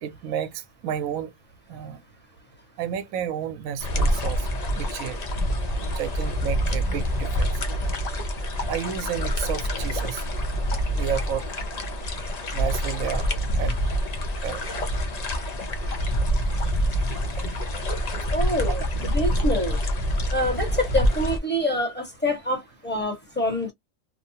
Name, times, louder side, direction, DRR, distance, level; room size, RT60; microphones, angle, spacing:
voice 1, 0.0-1.3 1.7-2.0 2.8-4.5 4.7-5.2 5.9-7.5 8.7-11.4 12.5-13.2 13.6-13.8 14.4-14.8 18.7-18.8, right 9 dB, 80° right, 1.0 m, -31 dB
sound 1, 3.8-21.4, equal, 45° left, 0.5 m, -26 dB
voice 2, 18.3-18.8 19.1-19.8 20.3-23.7, left 1 dB, 10° left, 1.1 m, -26 dB
2.8 x 2.1 x 2.7 m
omnidirectional pair, 1.4 m